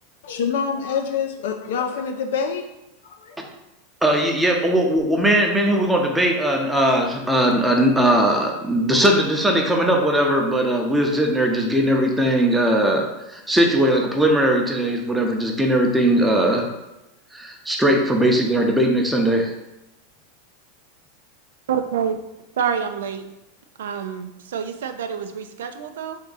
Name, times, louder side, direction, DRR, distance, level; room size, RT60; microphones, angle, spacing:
voice 1, 0.2-2.7 3.0-3.4, left 6 dB, 80° left, 4 dB, 0.4 m, -26 dB
voice 2, 4.0-16.7 17.3-19.5, right 1 dB, 5° right, 1 dB, 0.7 m, -19 dB
voice 3, 21.7-22.2 22.6-23.2 23.8-26.2, right 7 dB, 85° right, 8 dB, 0.4 m, -27 dB
3.5 x 2.7 x 4.0 m, 0.93 s
hypercardioid pair, 115°, 0 cm